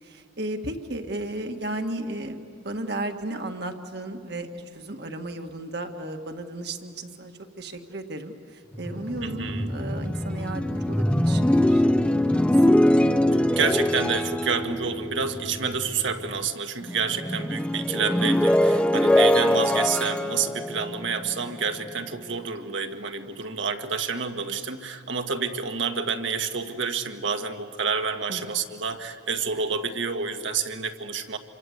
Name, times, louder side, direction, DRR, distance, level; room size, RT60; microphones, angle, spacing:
voice 1, 0.0-12.5 28.3-28.5, right 1 dB, 55° right, 5 dB, 1.7 m, -34 dB
sound 1, 8.7-16.5 16.8-21.9, left 1 dB, 5° left, 0.6 m, -23 dB
voice 2, 9.2-9.7 13.3-31.4, right 5 dB, 70° right, 5 dB, 1.7 m, -29 dB
27.5 x 24.5 x 8.0 m, 2.3 s
head